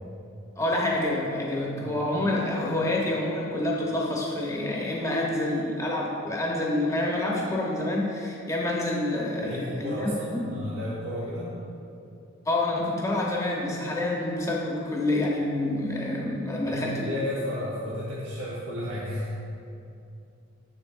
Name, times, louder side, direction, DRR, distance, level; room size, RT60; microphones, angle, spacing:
voice 1, 0.6-10.4 12.5-17.0, left 1 dB, 15° left, -3 dB, 0.8 m, -27 dB
voice 2, 9.4-11.6 16.6-19.3, left 1 dB, 70° right, -7 dB, 0.8 m, -33 dB
7.3 x 6.7 x 2.5 m, 2.6 s
head